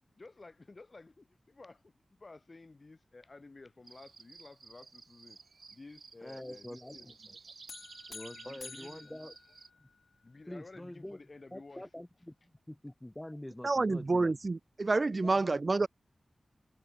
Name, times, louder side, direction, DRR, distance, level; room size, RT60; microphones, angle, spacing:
voice 1, 0.0-1.9 2.2-5.4 5.7-7.5 8.3-9.1 10.2-11.9, left 3 dB, 40° left, 7.9 m, -53 dB
sound 1, 3.8-9.7, right 4 dB, 70° right, 4.0 m, -54 dB
voice 2, 6.2-6.9 8.1-9.3 9.8-9.9 10.5-11.2 11.5-14.3 15.2-15.5, left 1 dB, 10° left, 2.8 m, -45 dB
sound 2, 7.7-10.1, left 5 dB, 75° left, 0.9 m, -50 dB
voice 3, 13.6-15.9, right 3 dB, 45° right, 0.3 m, -28 dB
wide cardioid pair, 80°, 0 cm